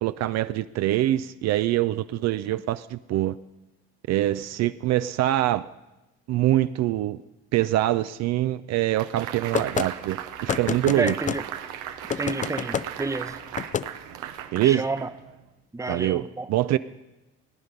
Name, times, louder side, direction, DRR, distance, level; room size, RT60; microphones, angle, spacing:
voice 1, 0.0-3.4 4.1-5.7 6.3-7.2 7.5-11.2 14.5-14.9 15.9-16.8, right 14 dB, 60° right, 13 dB, 0.4 m, -24 dB
sound 1, 9.0-15.4, right 10 dB, 85° right, 0.8 m, -37 dB
sound 2, 9.5-9.9 10.5-11.4 12.1-12.9 13.5-13.9, left 7 dB, 25° left, 0.4 m, -28 dB
voice 2, 11.0-11.4 12.2-13.4 14.6-15.1 15.7-16.5, right 3 dB, 10° right, 13 dB, 0.7 m, -30 dB
18.0 x 9.6 x 5.2 m, 0.99 s
supercardioid pair, 65°, 30 cm